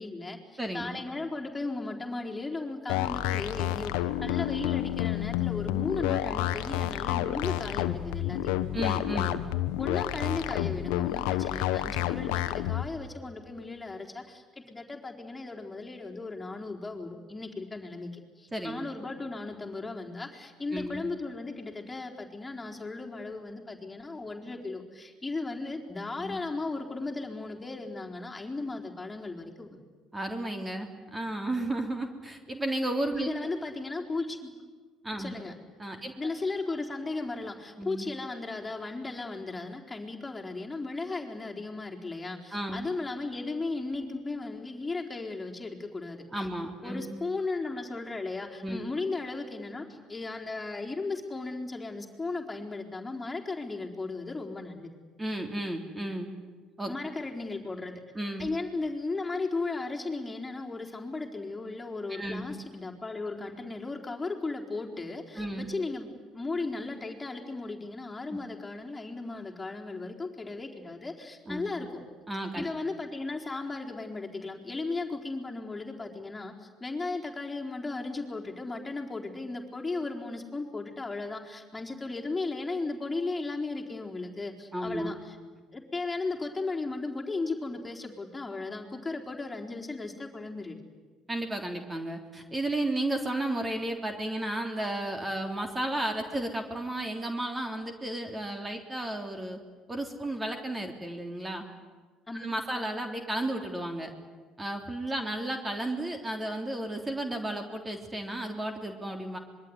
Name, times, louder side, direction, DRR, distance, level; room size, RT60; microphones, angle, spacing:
voice 1, 0.0-8.6 9.8-29.8 33.1-34.5 35.2-35.5 36.2-46.5 46.8-54.9 56.9-58.0 58.4-66.1 66.3-71.9 72.6-85.4 85.7-90.8 102.3-102.5, left 3 dB, 20° left, 1 dB, 4.1 m, -36 dB
voice 2, 0.6-1.0 8.7-9.4 18.5-18.9 20.7-21.1 26.2-26.4 30.1-33.3 35.0-35.3 35.8-36.1 37.8-38.1 42.5-42.9 46.3-47.2 48.6-48.9 55.2-56.3 56.8-56.9 58.1-58.5 62.1-62.5 65.3-65.7 68.3-68.4 71.5-71.7 72.3-72.7 84.7-85.1 91.3-99.6 99.9-101.6 102.3-104.1 104.6-109.4, right 1 dB, 20° right, 5 dB, 3.5 m, -33 dB
sound 1, 2.9-12.9, left 14 dB, 75° left, 1.1 m, -30 dB
26.0 x 22.5 x 9.7 m, 1.4 s
hypercardioid pair, 60°, 0 cm